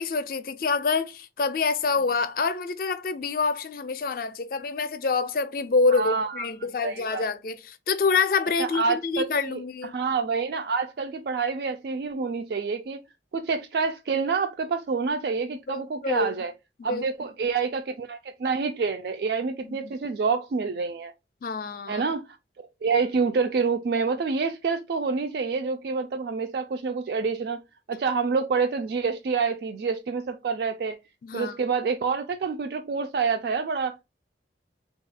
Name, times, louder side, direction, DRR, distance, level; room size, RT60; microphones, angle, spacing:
voice 1, 0.0-9.9 15.7-16.3 16.9-17.0 19.6-19.9 21.4-22.0 31.2-31.6, left 4 dB, 50° left, 0.4 m, -26 dB
voice 2, 5.9-6.5 6.8-7.2 8.6-9.6 9.9-13.0 13.3-16.5 16.8-21.1 21.9-22.4 22.8-27.6 27.9-31.0 31.3-34.0, right 5 dB, 60° right, 0.3 m, -27 dB
3.5 x 2.3 x 4.1 m
head